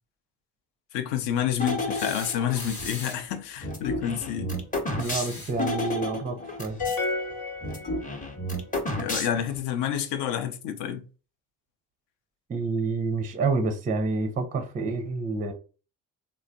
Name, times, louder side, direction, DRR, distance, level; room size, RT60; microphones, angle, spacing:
voice 1, 0.9-4.6 9.0-11.0, left 10 dB, 60° left, 0.6 m, -29 dB
sound 1, 1.6-3.0 3.6-7.0 7.3-7.4 7.6-9.6, left 2 dB, 15° left, 0.7 m, -31 dB
sound 2, 1.9-3.4 4.9-5.7 7.3-7.4 8.9-9.0, left 3 dB, 85° left, 1.0 m, -40 dB
voice 2, 4.9-6.8 12.5-15.5, right 4 dB, 20° right, 0.4 m, -28 dB
sound 3, 6.8-8.5, left 3 dB, 45° left, 0.9 m, -31 dB
3.1 x 2.0 x 2.5 m
hypercardioid pair, 45°, 48 cm